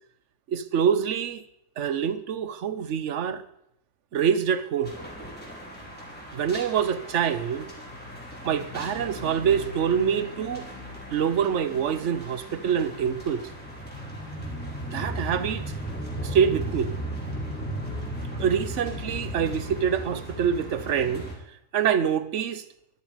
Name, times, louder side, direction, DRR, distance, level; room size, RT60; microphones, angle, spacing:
voice 1, 0.5-1.4 1.8-3.4 4.1-5.0 6.3-7.7 8.4-10.7 11.1-13.4 14.9-15.6 16.2-16.9 18.4-21.3 21.7-22.6, right 7 dB, 65° right, 1.1 m, -25 dB
sound 1, 4.8-21.3, equal, 5° left, 4.3 m, -36 dB
13.5 x 12.5 x 5.1 m
omnidirectional pair, 1.4 m